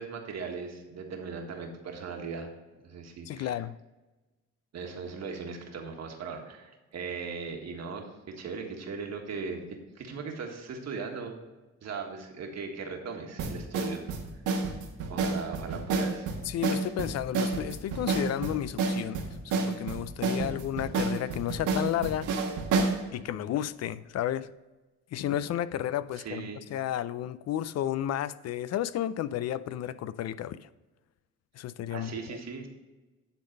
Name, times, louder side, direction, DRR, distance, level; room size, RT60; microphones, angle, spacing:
voice 1, 0.0-2.5 2.8-3.5 4.7-9.6 9.9-11.4 11.8-14.0 15.1-16.3 26.2-26.6 31.9-32.7, right 5 dB, 60° right, 1.6 m, -38 dB
voice 2, 3.3-3.8 16.5-19.2 19.5-22.3 23.1-24.5 25.1-30.7 31.6-32.4, left 11 dB, 60° left, 0.4 m, -32 dB
sound 1, 13.4-23.0, right 4 dB, 85° right, 1.4 m, -29 dB
10.5 x 3.9 x 5.4 m
cardioid pair, 90°, 30 cm